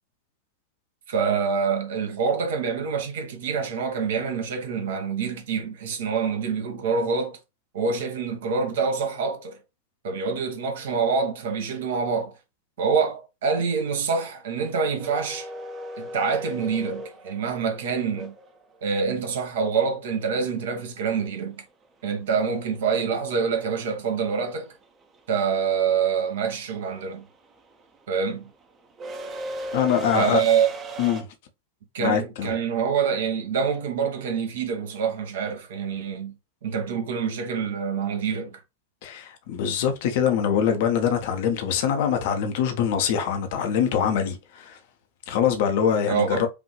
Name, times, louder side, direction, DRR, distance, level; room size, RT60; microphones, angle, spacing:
voice 1, 1.1-7.4 7.7-9.6 10.0-12.4 12.8-15.5 16.0-18.3 18.8-21.6 22.0-24.8 25.3-27.2 28.1-28.4 30.1-30.7 31.9-36.3 36.6-38.6 46.1-46.5, right 6 dB, 60° right, 1.0 m, -26 dB
sound 1, 15.0-19.0 21.5-21.6 22.9-23.2 23.4-31.2, right 1 dB, 25° right, 0.8 m, -37 dB
voice 2, 29.7-30.4 31.0-31.3 32.0-32.5 39.0-44.8 45.3-46.5, left 8 dB, 50° left, 0.8 m, -24 dB
5.1 x 2.6 x 3.1 m
figure-of-eight pair, 90°, 0 cm